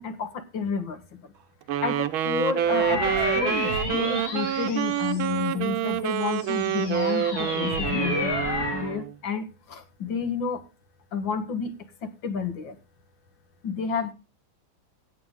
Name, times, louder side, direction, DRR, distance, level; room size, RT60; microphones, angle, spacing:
voice 1, 0.0-1.3 1.8-8.4 8.7-10.6 11.1-11.7 12.0-12.8 13.6-14.1, left 6 dB, 70° left, 10 dB, 2.3 m, -30 dB
Wind instrument woodwind instrument, 1.7-9.1, right 10 dB, 90° right, 1.7 m, -27 dB
sound 1, 2.6-5.5 6.1-9.0, left 3 dB, 50° left, 3.3 m, -31 dB
16.5 x 8.6 x 3.7 m, 0.29 s
omnidirectional pair, 2.2 m